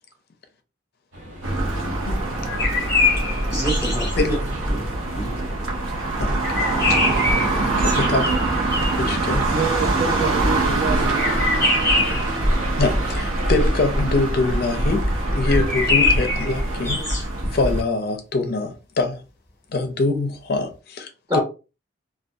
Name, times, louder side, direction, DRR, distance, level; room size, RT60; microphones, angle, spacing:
sound 1, 1.1-17.0, right 1 dB, 70° right, 1.4 m, -37 dB
sound 2, 1.4-17.8, right 2 dB, 90° right, 0.7 m, -23 dB
voice 1, 1.8-2.2 4.2-4.4 6.2-6.3 7.8-8.3 8.9-9.5 12.8-15.0 15.3-17.3 17.5-19.2 19.7-21.4, left 3 dB, 50° left, 0.4 m, -24 dB
sound 3, 2.5-4.1 6.4-9.1 11.1-12.3 15.5-17.2, left 3 dB, 15° left, 0.9 m, -23 dB
voice 2, 3.5-4.3 4.7-4.9 5.1-5.4 21.3-21.4, equal, 15° right, 0.7 m, -26 dB
voice 3, 9.5-11.5, right 5 dB, 50° right, 0.5 m, -28 dB
2.6 x 2.2 x 2.2 m
head